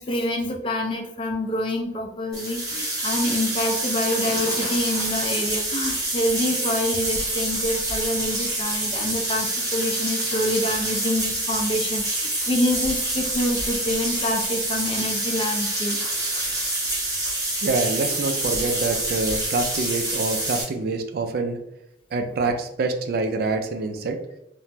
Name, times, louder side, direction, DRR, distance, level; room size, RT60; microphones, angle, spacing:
voice 1, 0.0-16.0, left 1 dB, 30° left, 3 dB, 0.4 m, -26 dB
sound 1, 2.3-20.6, right 1 dB, 20° right, 0.9 m, -27 dB
voice 2, 17.6-21.6 22.1-24.2, right 3 dB, 55° right, 6 dB, 0.3 m, -26 dB
3.4 x 2.0 x 2.8 m, 0.79 s
head